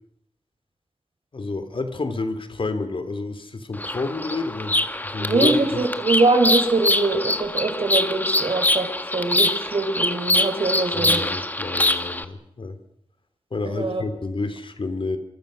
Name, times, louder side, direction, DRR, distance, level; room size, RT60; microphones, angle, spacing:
voice 1, 1.3-5.5 10.9-12.8 13.5-15.2, left 3 dB, 60° left, 9 dB, 3.0 m, -29 dB
Bird vocalization bird call bird song, 3.7-12.2, left 1 dB, 15° left, 1.6 m, -24 dB
voice 2, 5.3-8.9 9.1-11.2 13.6-14.0, right 3 dB, 65° right, 5 dB, 6.0 m, -22 dB
26.5 x 24.5 x 6.4 m, 0.72 s
wide cardioid pair, 85°, 10 cm